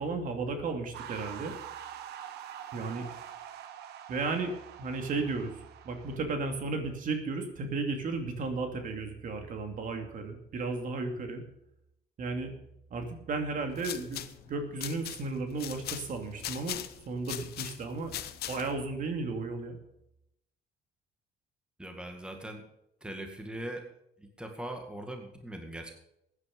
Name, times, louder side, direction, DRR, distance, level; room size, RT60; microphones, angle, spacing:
voice 1, 0.0-1.5 2.7-3.1 4.1-4.5 4.8-11.4 12.2-12.5 12.9-18.2 18.5-19.8, right 3 dB, 50° right, 5 dB, 2.6 m, -34 dB
sound 1, 0.9-6.2, right 9 dB, 75° right, 1.4 m, -45 dB
sound 2, 13.6-18.9, left 12 dB, 70° left, 1.0 m, -41 dB
voice 2, 21.8-22.6 23.0-23.9 24.2-25.9, right 1 dB, 5° right, 4 dB, 2.0 m, -40 dB
15.0 x 9.9 x 5.3 m, 0.80 s
cardioid pair, 110°, 17 cm